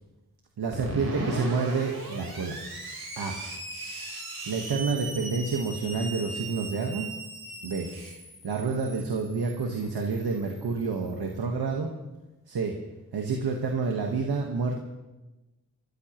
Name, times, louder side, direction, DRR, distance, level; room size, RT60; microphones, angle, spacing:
voice 1, 0.6-2.6 3.2-3.3 4.5-7.1 7.6-7.9 8.4-11.9 12.5-12.7 13.1-14.8, right 4 dB, 85° right, 2 dB, 1.4 m, -29 dB
Screech, 0.7-11.2, right 2 dB, 70° right, 4.1 m, -38 dB
25.5 x 13.5 x 3.1 m, 1.1 s
cardioid pair, 50°, 38 cm